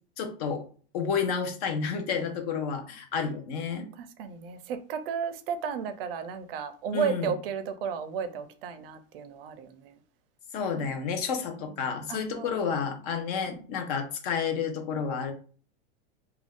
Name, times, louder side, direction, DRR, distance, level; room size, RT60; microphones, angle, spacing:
voice 1, 0.2-0.6 0.9-3.9 6.9-7.3 10.5-15.3, left 6 dB, 40° left, 0.5 m, -30 dB
voice 2, 4.0-10.0 11.6-12.5 13.5-13.7, right 7 dB, 60° right, 0.5 m, -34 dB
2.4 x 2.3 x 3.4 m
supercardioid pair, 165°, 32 cm